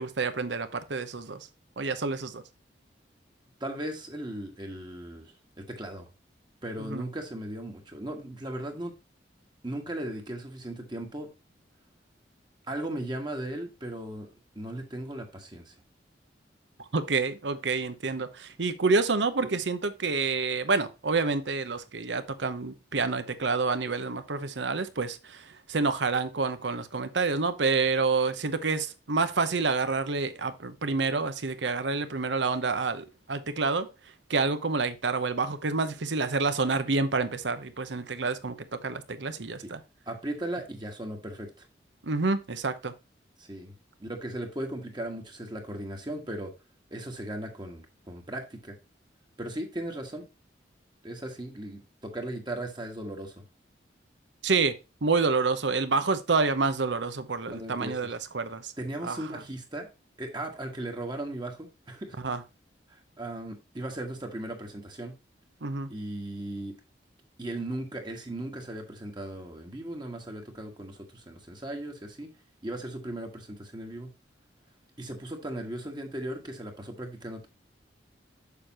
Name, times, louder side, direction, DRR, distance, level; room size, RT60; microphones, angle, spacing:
voice 1, 0.0-1.5 1.8-2.4 6.8-7.0 16.9-33.9 34.3-39.8 42.0-42.9 54.4-54.7 55.0-58.7 59.0-59.3 62.2-62.4 65.6-66.0, right 4 dB, 75° right, 0.9 m, -28 dB
voice 2, 3.6-5.3 5.7-6.1 6.6-8.9 9.6-11.3 12.7-14.3 14.5-15.7 39.6-39.7 40.1-41.5 43.4-43.7 44.0-46.5 46.9-48.7 49.4-50.2 51.0-53.3 57.5-58.0 58.8-59.9 60.2-62.1 62.9-65.1 65.9-66.7 67.4-72.3 72.6-74.1 75.0-77.5, right 1 dB, 25° right, 1.5 m, -37 dB
6.8 x 6.7 x 2.9 m
head